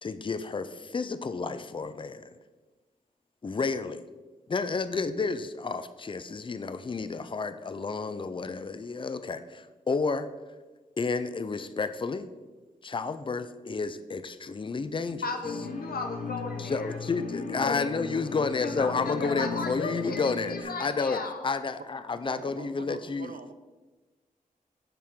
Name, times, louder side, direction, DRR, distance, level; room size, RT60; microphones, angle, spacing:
voice 1, 0.0-2.3 3.4-4.0 4.5-10.3 11.0-12.3 12.8-15.2 16.6-23.4, left 4 dB, 35° left, 11 dB, 0.5 m, -31 dB
voice 2, 15.2-17.0 17.2-18.0 18.6-21.5, left 4 dB, 85° left, 4 dB, 0.8 m, -35 dB
sound 1, 15.4-20.6, left 4 dB, 60° left, 0.9 m, -37 dB
voice 3, 22.1-23.5, right 5 dB, 70° right, 10 dB, 0.6 m, -45 dB
11.0 x 4.5 x 3.6 m, 1.2 s
wide cardioid pair, 70°, 15 cm